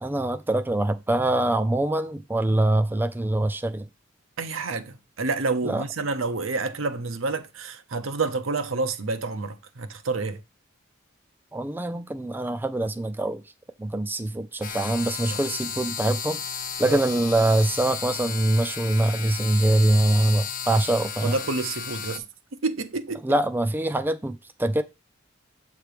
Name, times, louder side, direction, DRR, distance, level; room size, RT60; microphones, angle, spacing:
voice 1, 0.0-3.9 5.6-5.8 11.5-13.4 13.8-16.4 16.8-21.4 23.2-24.8, right 1 dB, 10° right, 0.4 m, -24 dB
voice 2, 4.4-10.4 15.3-15.4 16.8-17.0 21.2-22.2 22.6-23.2, right 3 dB, 75° right, 0.8 m, -28 dB
sound 1, 14.6-22.2, left 7 dB, 45° left, 0.7 m, -34 dB
7.7 x 3.2 x 4.9 m
head